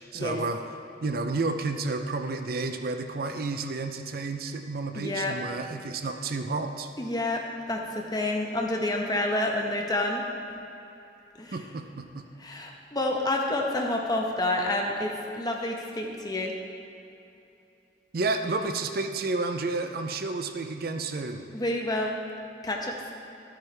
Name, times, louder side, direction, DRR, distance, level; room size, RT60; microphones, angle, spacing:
voice 1, 0.1-0.6 1.0-6.9 11.5-12.3 18.1-21.5, right 3 dB, 55° right, 7 dB, 0.5 m, -31 dB
voice 2, 4.9-5.3 7.0-7.4 7.7-10.2 11.4-11.6 12.4-16.5 21.5-22.2 22.6-23.1, left 1 dB, 20° left, 0 dB, 1.0 m, -29 dB
12.5 x 9.0 x 3.3 m, 2.9 s
head